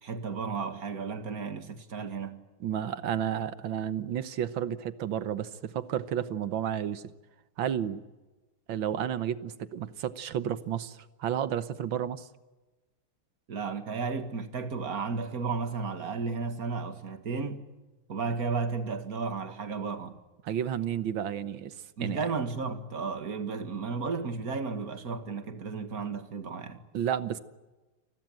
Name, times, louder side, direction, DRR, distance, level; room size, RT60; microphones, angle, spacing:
voice 1, 0.0-2.4 13.5-17.6 18.1-20.2 22.0-26.8, right 4 dB, 45° right, 2.3 m, -33 dB
voice 2, 2.6-7.0 7.6-8.0 8.7-12.3 20.4-21.7 22.0-22.3 26.9-27.4, right 9 dB, 70° right, 1.8 m, -31 dB
29.5 x 20.5 x 9.0 m
omnidirectional pair, 2.3 m